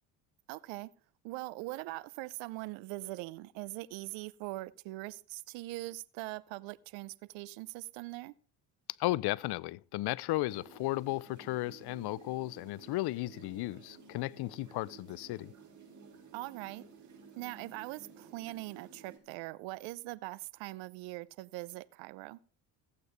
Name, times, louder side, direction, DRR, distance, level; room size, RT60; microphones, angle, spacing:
voice 1, 0.5-0.9 1.2-8.3 16.3-16.8 17.4-22.4, right 20 dB, 70° right, 0.7 m, -42 dB
voice 2, 9.0-15.5, left 18 dB, 55° left, 0.6 m, -34 dB
sound 1, 10.5-19.2, right 5 dB, 40° right, 6.1 m, -55 dB
15.0 x 8.3 x 5.0 m
supercardioid pair, 80°, 46 cm